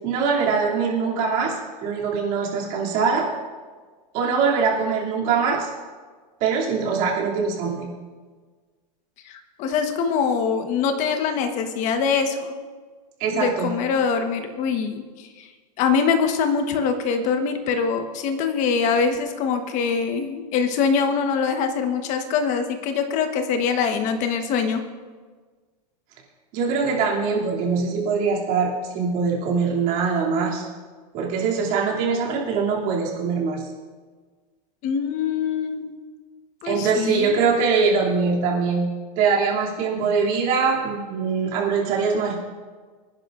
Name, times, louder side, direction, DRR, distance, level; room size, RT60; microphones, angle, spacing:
voice 1, 0.0-3.3 4.1-5.7 6.4-7.9 13.2-13.7 26.5-30.6 31.1-33.7 36.6-38.9 39.2-42.4, right 5 dB, 40° right, -3 dB, 2.8 m, -23 dB
voice 2, 9.2-12.5 13.3-15.5 15.8-24.9 34.8-35.9 36.6-37.4, left 6 dB, 35° left, 6 dB, 1.2 m, -23 dB
25.5 x 10.5 x 2.6 m, 1.5 s
supercardioid pair, 155°, 21 cm